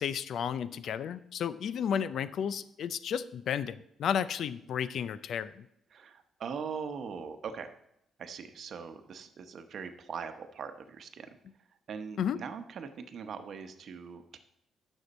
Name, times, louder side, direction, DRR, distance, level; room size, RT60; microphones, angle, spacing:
voice 1, 0.0-5.7 12.2-12.4, left 8 dB, 65° left, 15 dB, 0.4 m, -33 dB
voice 2, 5.9-7.7 8.2-11.4 11.9-14.4, right 6 dB, 60° right, 8 dB, 0.9 m, -41 dB
10.0 x 6.4 x 4.1 m, 0.77 s
cardioid pair, 90°, 0 cm